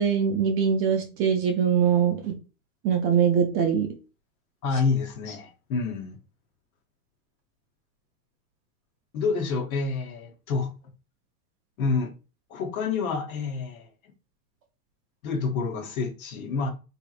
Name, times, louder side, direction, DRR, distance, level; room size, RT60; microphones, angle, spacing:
voice 1, 0.0-2.3 2.8-3.9, right 7 dB, 30° right, 0.6 m, -22 dB
voice 2, 4.6-6.2 9.1-10.7 11.8-12.1 12.5-13.9 15.2-16.7, left 4 dB, 60° left, 1.0 m, -28 dB
3.5 x 2.8 x 2.4 m
hypercardioid pair, 120°, 47 cm